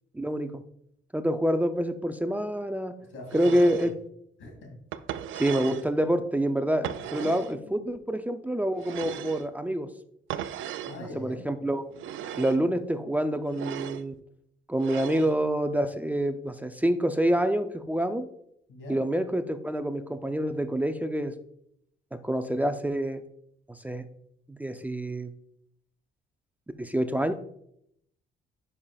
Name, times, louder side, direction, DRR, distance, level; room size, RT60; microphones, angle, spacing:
voice 1, 0.1-0.6 1.1-2.9 3.3-3.9 5.3-9.9 11.1-11.8 12.4-14.1 14.7-18.3 18.9-21.3 22.2-23.2 23.7-24.0 24.5-25.3 26.8-27.3, right 1 dB, 10° right, 8 dB, 0.5 m, -27 dB
voice 2, 3.1-3.7 4.4-4.7 7.1-7.9 10.9-11.4 18.7-19.0, left 2 dB, 85° left, 1 dB, 2.5 m, -41 dB
sound 1, 3.3-3.9 4.9-5.9 6.8-7.5 8.8-9.5 10.3-11.0 11.9-12.6 13.5-14.0 14.8-15.3, right 10 dB, 80° right, 0.4 m, -36 dB
9.7 x 5.6 x 2.4 m, 0.72 s
cardioid pair, 90°, 20 cm